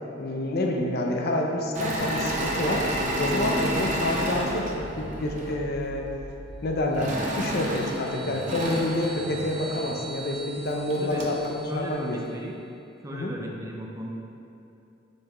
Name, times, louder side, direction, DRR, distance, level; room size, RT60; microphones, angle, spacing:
voice 1, 0.2-2.8 3.2-6.1 6.6-12.4 13.1-13.3, left 1 dB, 50° left, 1 dB, 0.6 m, -28 dB
Engine / Mechanisms, 1.7-5.5 6.9-9.9 10.5-10.6 10.9-11.5, right 1 dB, 40° right, 0.8 m, -30 dB
sound 1, 2.2-8.4, equal, 25° left, 1.2 m, -43 dB
sound 2, 6.9-12.4, right 3 dB, 65° right, 1.1 m, -44 dB
voice 2, 10.7-11.3 11.7-12.5 13.0-14.1, equal, 15° right, 0 dB, 0.5 m, -36 dB
7.3 x 5.5 x 3.0 m, 2.7 s
head